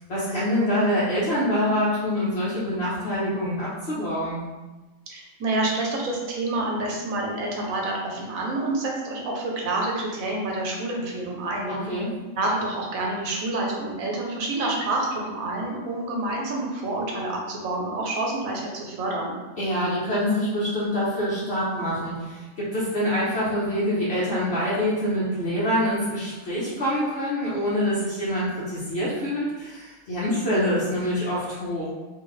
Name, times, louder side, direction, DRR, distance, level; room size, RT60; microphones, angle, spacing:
voice 1, 0.1-4.4 11.7-12.1 19.6-31.9, equal, 55° left, -8 dB, 1.1 m, -25 dB
voice 2, 5.1-11.7 12.3-19.4, right 2 dB, 85° right, -1 dB, 1.2 m, -28 dB
3.7 x 2.7 x 3.2 m, 1.2 s
omnidirectional pair, 1.4 m